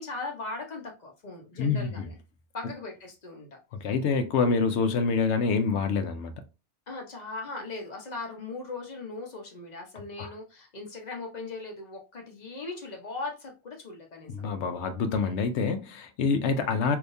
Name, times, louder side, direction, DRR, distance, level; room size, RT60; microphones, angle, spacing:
voice 1, 0.0-2.1 2.5-3.6 6.9-14.3, left 3 dB, 40° left, 0.9 m, -39 dB
voice 2, 1.6-2.1 3.7-6.3 10.2-10.3 14.3-17.0, left 5 dB, 70° left, 0.9 m, -26 dB
3.4 x 2.7 x 2.6 m
omnidirectional pair, 1.2 m